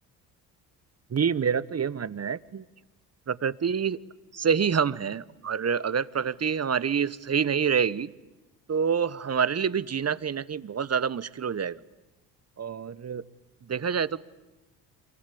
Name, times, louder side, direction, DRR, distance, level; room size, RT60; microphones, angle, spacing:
voice 1, 1.1-2.6 3.3-4.0 4.3-8.1 8.7-11.8 12.6-13.2 13.6-14.2, right 7 dB, 30° right, 18 dB, 1.2 m, -27 dB
27.5 x 23.5 x 8.5 m, 1.0 s
hypercardioid pair, 55°, 49 cm